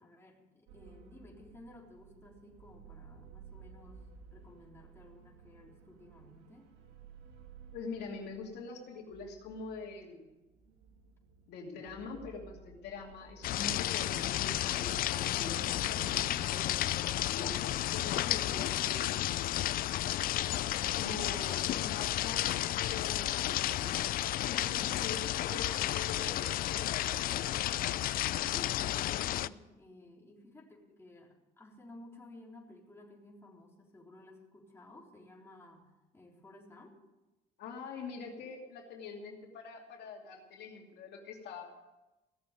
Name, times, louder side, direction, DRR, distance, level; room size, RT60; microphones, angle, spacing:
voice 1, 0.0-4.0 4.3-6.7 25.4-25.9 28.4-37.0, left 1 dB, 15° left, -2 dB, 3.7 m, -54 dB
sound 1, 0.7-17.6, right 5 dB, 90° right, 1.8 m, -56 dB
voice 2, 7.7-10.3 11.5-19.1 20.5-22.5 22.8-24.2 24.5-27.9 37.6-41.9, left 4 dB, 75° left, 1 dB, 2.6 m, -44 dB
sound 2, 13.4-29.5, left 14 dB, 60° left, 0.4 m, -32 dB
17.0 x 7.3 x 9.2 m, 1.1 s
cardioid pair, 110°, 17 cm